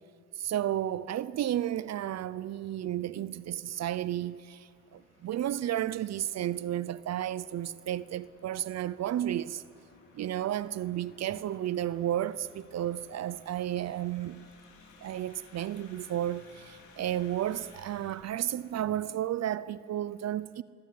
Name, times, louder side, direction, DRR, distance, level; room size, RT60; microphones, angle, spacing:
voice 1, 0.4-9.6 10.1-14.5 15.0-20.6, right 12 dB, 60° right, 0.6 m, -32 dB
sound 1, 3.4-19.0, left 4 dB, 85° left, 5.0 m, -59 dB
25.0 x 16.0 x 9.5 m
cardioid pair, 90°, 30 cm